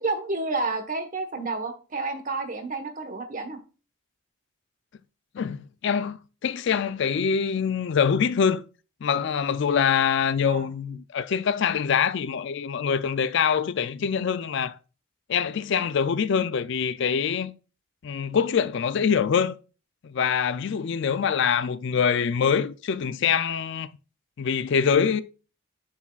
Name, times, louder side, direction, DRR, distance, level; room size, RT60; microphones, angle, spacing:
voice 1, 0.0-3.6 10.5-10.7, right 3 dB, 40° right, 1.2 m, -30 dB
voice 2, 5.3-8.6 9.0-14.7 15.3-17.5 18.0-19.6 20.0-23.9 24.4-25.2, left 7 dB, 55° left, 0.4 m, -24 dB
8.5 x 7.1 x 2.4 m
head